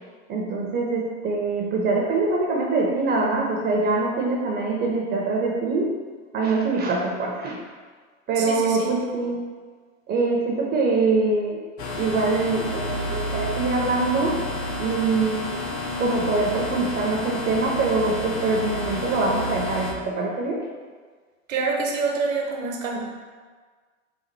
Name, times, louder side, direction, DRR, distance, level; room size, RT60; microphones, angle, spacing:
voice 1, 0.3-5.9 6.3-7.6 8.3-9.4 10.1-11.6 12.0-14.3 14.8-15.6 16.0-20.6, right 3 dB, 25° right, -2 dB, 0.6 m, -24 dB
voice 2, 8.4-8.9 21.5-23.1, right 4 dB, 80° right, -1 dB, 1.0 m, -26 dB
sound 1, 11.8-19.9, left 1 dB, 35° left, 0.6 m, -30 dB
4.0 x 2.3 x 4.5 m, 1.5 s
hypercardioid pair, 105°, 39 cm